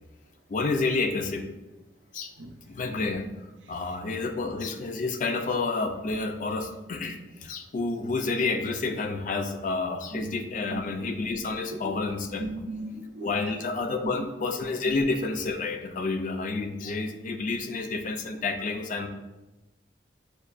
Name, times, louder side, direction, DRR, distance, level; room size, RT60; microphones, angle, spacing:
voice 1, 0.5-1.5 2.1-2.3 2.7-3.3 3.7-12.5 13.2-19.1, left 3 dB, 45° left, 6 dB, 0.4 m, -29 dB
voice 2, 10.1-10.4 10.7-11.1 12.4-13.3 14.0-14.1 14.8-15.0, right 2 dB, 90° right, 3 dB, 0.5 m, -37 dB
6.5 x 2.2 x 2.4 m, 1.0 s
head